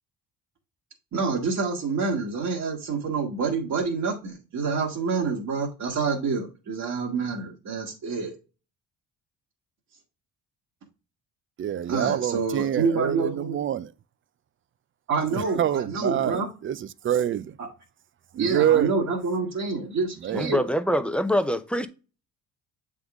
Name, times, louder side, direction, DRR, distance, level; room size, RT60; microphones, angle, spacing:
voice 1, 1.1-8.4 11.9-13.6 15.1-16.5 17.6-17.7 18.4-20.7, right 4 dB, 55° right, 1.5 m, -27 dB
voice 2, 11.6-13.9 15.3-17.6 18.3-18.9 20.2-20.5, right 10 dB, 40° right, 0.4 m, -26 dB
voice 3, 20.3-21.9, equal, 5° left, 0.6 m, -24 dB
7.7 x 3.7 x 3.5 m
cardioid pair, 105°, 33 cm